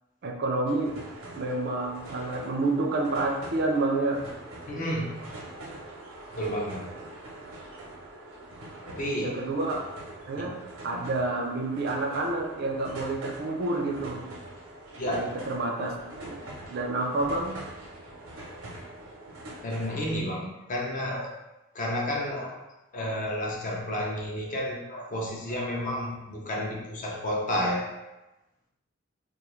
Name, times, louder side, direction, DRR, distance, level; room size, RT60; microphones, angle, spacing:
voice 1, 0.2-1.0 1.3-4.2 9.2-9.8 10.2-14.2 15.1-16.4 16.7-17.6, right 2 dB, 50° right, 2 dB, 0.4 m, -29 dB
sound 1, 0.6-20.2, right 1 dB, 90° right, 0.7 m, -43 dB
voice 2, 4.7-5.1 6.3-6.8 8.9-9.4 15.0-15.3 19.6-21.3 21.7-22.6 22.9-27.8, equal, 40° left, -1 dB, 0.5 m, -31 dB
2.3 x 2.3 x 3.0 m, 0.98 s
head